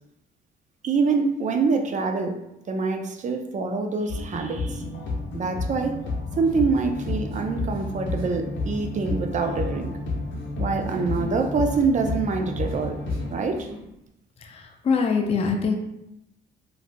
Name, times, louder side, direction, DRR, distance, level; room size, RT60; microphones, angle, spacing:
voice 1, 0.8-2.4 2.7-4.8 5.3-6.0 6.4-9.9 10.6-13.0 13.3-13.7, right 4 dB, 40° right, 6 dB, 0.4 m, -25 dB
sound 1, 4.1-13.4, left 2 dB, 70° left, 0.7 m, -31 dB
Human voice, 6.4-7.4 7.7-8.4 8.7-13.9, right 1 dB, 90° right, 1.0 m, -42 dB
voice 2, 14.4-15.7, left 5 dB, 30° left, 3 dB, 0.4 m, -24 dB
3.1 x 2.5 x 2.5 m, 0.86 s
cardioid pair, 90°, 20 cm